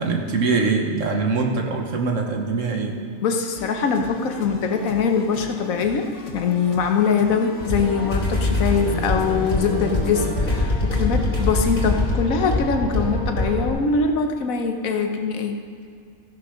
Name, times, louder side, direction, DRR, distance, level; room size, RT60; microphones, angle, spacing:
voice 1, 0.0-3.0, right 4 dB, 70° right, 2 dB, 1.5 m, -23 dB
voice 2, 3.2-15.6, left 5 dB, 85° left, 5 dB, 1.3 m, -23 dB
sound 1, 3.5-10.4, left 3 dB, 65° left, 1.3 m, -40 dB
sound 2, 7.6-13.7, left 2 dB, 40° left, 3.0 m, -23 dB
15.0 x 6.6 x 5.6 m, 2.4 s
omnidirectional pair, 1.4 m